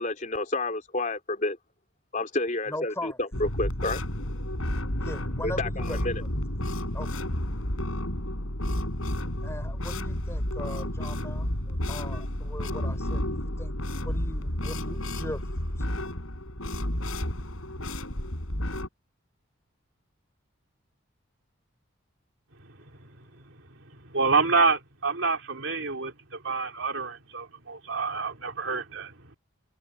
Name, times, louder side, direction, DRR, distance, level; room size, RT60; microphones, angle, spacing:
voice 1, 0.0-1.6 2.1-4.0 5.4-6.2, left 2 dB, 35° left, 3.8 m, -30 dB
voice 2, 2.7-3.2 5.0-6.3 6.9-7.1 9.4-15.9, left 1 dB, 10° left, 5.8 m, -40 dB
sound 1, 3.3-18.9, left 1 dB, 80° left, 5.6 m, -31 dB
voice 3, 22.6-29.4, right 4 dB, 65° right, 3.1 m, -28 dB
head